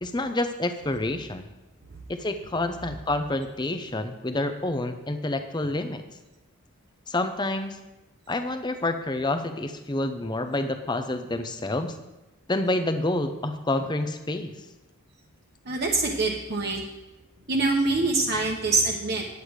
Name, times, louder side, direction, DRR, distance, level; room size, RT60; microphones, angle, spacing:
voice 1, 0.0-1.5 2.1-6.0 7.1-7.8 8.3-12.0 12.5-14.5, left 2 dB, 20° left, 8 dB, 0.6 m, -28 dB
voice 2, 15.6-16.8 17.5-19.4, right 3 dB, 45° right, -2 dB, 1.0 m, -25 dB
9.9 x 8.3 x 4.8 m, 1.0 s
head